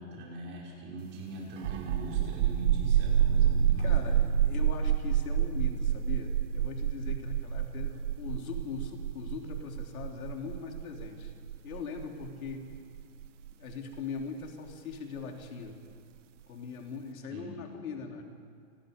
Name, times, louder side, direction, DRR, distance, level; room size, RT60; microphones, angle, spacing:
voice 1, 0.0-4.3 17.3-17.5, equal, 25° right, -4 dB, 5.7 m, -41 dB
sound 1, 1.6-14.9, right 9 dB, 60° right, 1.4 m, -28 dB
voice 2, 3.8-11.3 11.6-12.6 13.6-15.8 16.5-18.2, left 5 dB, 80° left, 2 dB, 3.3 m, -41 dB
28.0 x 20.0 x 5.3 m, 2.3 s
supercardioid pair, 165°, 42 cm